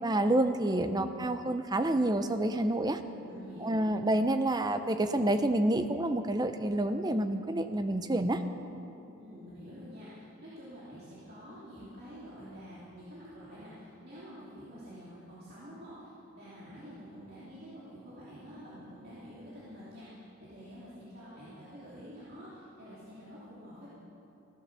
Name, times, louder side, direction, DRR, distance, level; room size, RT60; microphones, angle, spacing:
voice 1, 0.0-3.0 3.6-8.4, right 1 dB, 20° right, 9 dB, 0.6 m, -28 dB
voice 2, 3.1-3.9 9.2-16.1 16.3-23.9, equal, 45° right, -10 dB, 2.9 m, -48 dB
16.0 x 10.5 x 6.8 m, 2.9 s
head